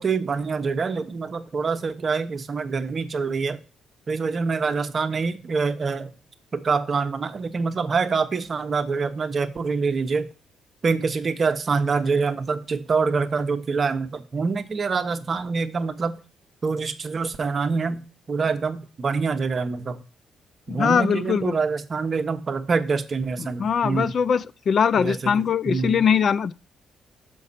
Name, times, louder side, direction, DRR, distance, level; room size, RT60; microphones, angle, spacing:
voice 1, 0.0-3.6 4.1-6.1 6.5-10.3 10.8-16.2 16.6-20.0 20.7-24.1 24.9-26.0, right 4 dB, 40° right, 0.8 m, -25 dB
voice 2, 20.7-21.6 23.6-26.5, left 7 dB, 55° left, 0.3 m, -21 dB
6.4 x 5.3 x 4.1 m
cardioid pair, 90°, 0 cm